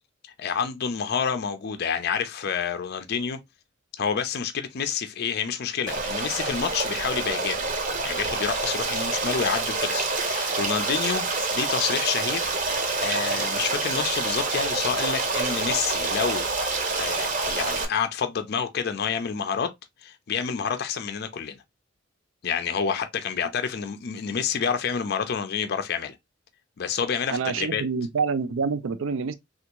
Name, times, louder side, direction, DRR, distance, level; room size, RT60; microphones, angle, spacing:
voice 1, 0.4-3.4 4.0-7.7 8.0-16.5 16.9-19.7 20.0-21.6 22.4-26.1 26.8-27.8, left 7 dB, 50° left, 0.4 m, -28 dB
Stream, 5.9-17.8, right 3 dB, 40° right, 0.7 m, -27 dB
voice 2, 27.3-29.3, right 5 dB, 70° right, 0.4 m, -27 dB
3.4 x 2.4 x 2.9 m
head